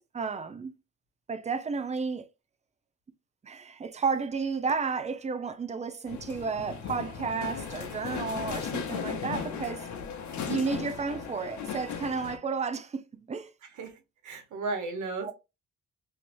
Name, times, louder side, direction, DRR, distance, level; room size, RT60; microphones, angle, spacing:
voice 1, 0.1-0.7 1.3-2.3 3.4-9.9 10.5-13.5 15.2-15.3, right 5 dB, 25° right, 0.5 m, -32 dB
sound 1, 6.1-12.4, left 7 dB, 70° left, 0.8 m, -36 dB
voice 2, 13.8-15.3, right 3 dB, 75° right, 1.3 m, -35 dB
3.2 x 2.8 x 2.6 m
cardioid pair, 90°, 30 cm